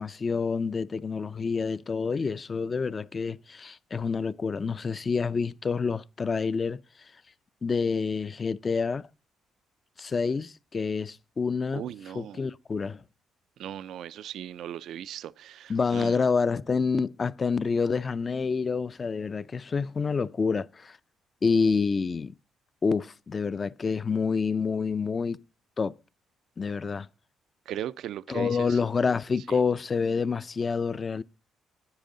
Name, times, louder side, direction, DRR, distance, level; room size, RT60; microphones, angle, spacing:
voice 1, 0.0-6.8 7.6-9.1 10.0-13.0 15.7-21.0 21.4-22.3 22.8-25.4 25.8-25.9 26.6-27.1 28.3-31.2, left 5 dB, 35° left, 0.4 m, -28 dB
voice 2, 11.7-12.4 13.6-16.1 27.7-28.7, right 11 dB, 75° right, 0.4 m, -38 dB
10.5 x 8.2 x 3.8 m
cardioid pair, 90°, 0 cm